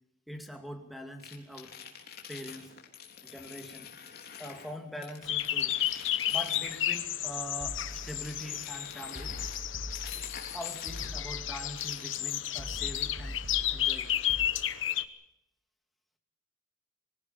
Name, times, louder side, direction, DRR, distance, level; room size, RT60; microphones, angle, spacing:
voice 1, 0.3-1.7 2.3-2.7 3.2-3.9 4.4-5.8 6.3-9.4 10.5-13.4 13.7-14.1, equal, ahead, 3 dB, 2.4 m, -43 dB
sound 1, 1.2-4.7 5.0-7.1 7.7-11.2 11.6-12.2, left 8 dB, 55° left, 3.5 m, -47 dB
sound 2, 5.2-15.0, left 12 dB, 80° left, 1.1 m, -32 dB
sound 3, 7.6-8.5 9.2-10.5 10.9-11.9 12.6-14.5, left 1 dB, 45° right, 6.1 m, -42 dB
24.5 x 16.5 x 7.1 m, 0.80 s
head